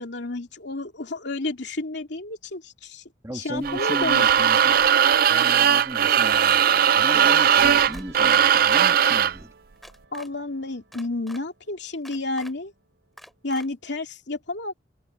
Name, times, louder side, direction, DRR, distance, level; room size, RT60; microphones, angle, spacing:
voice 1, 0.0-3.0 3.3-4.3 10.1-12.7 13.4-14.7, left 2 dB, 65° left, 2.8 m, -31 dB
voice 2, 3.2-4.9 5.3-9.5, equal, 15° right, 2.2 m, -36 dB
sound 1, 3.6-9.4, right 8 dB, 50° right, 0.5 m, -19 dB
sound 2, 4.2-4.7 5.3-5.8 6.4-6.9 7.6-8.0 8.6-9.2 9.8-10.3 10.9-11.4 12.0-12.5 13.2-13.7, equal, ahead, 5.0 m, -45 dB
sound 3, 6.6-12.0 12.2-12.6 13.8-13.9, right 5 dB, 80° right, 3.4 m, -45 dB
head